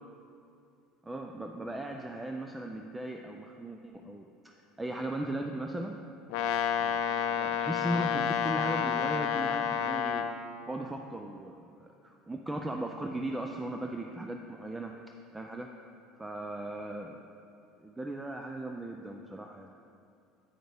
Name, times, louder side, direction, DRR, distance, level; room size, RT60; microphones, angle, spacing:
voice 1, 1.0-6.0 6.8-10.3 10.6-14.9 15.3-15.7 16.2-17.2 17.8-19.7, right 1 dB, 5° right, 3 dB, 0.3 m, -37 dB
Brass instrument, 6.3-10.4, left 8 dB, 70° left, 0.5 m, -30 dB
9.0 x 6.4 x 3.4 m, 2.6 s
cardioid pair, 155°, 0 cm